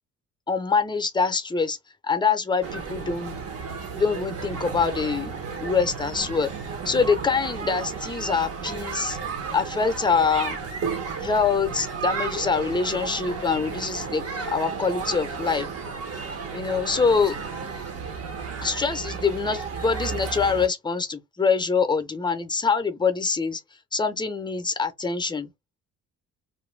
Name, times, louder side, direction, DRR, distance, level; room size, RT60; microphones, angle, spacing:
voice 1, 0.5-1.8 2.0-3.4 3.9-6.5 6.9-9.2 9.5-10.6 11.2-14.2 14.5-15.7 16.5-17.4 18.6-23.6 23.9-25.5, left 5 dB, 15° left, 0.6 m, -24 dB
sound 1, 2.6-20.7, right 5 dB, 50° right, 0.9 m, -33 dB
2.5 x 2.1 x 3.2 m
cardioid pair, 90°, 30 cm